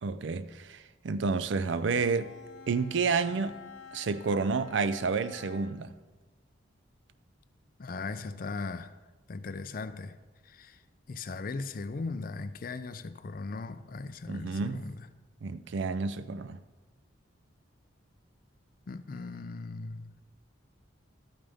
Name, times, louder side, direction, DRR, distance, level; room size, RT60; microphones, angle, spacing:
voice 1, 0.0-2.3 2.7-3.6 3.9-5.9 14.3-14.9 15.4-16.6, right 4 dB, 65° right, 0.4 m, -30 dB
Bowed string instrument, 1.5-6.0, left 5 dB, 70° left, 1.1 m, -50 dB
voice 2, 7.8-8.9 9.3-10.1 10.5-10.8 11.1-15.1 18.9-20.1, left 3 dB, 45° left, 0.4 m, -38 dB
12.5 x 8.9 x 3.5 m
head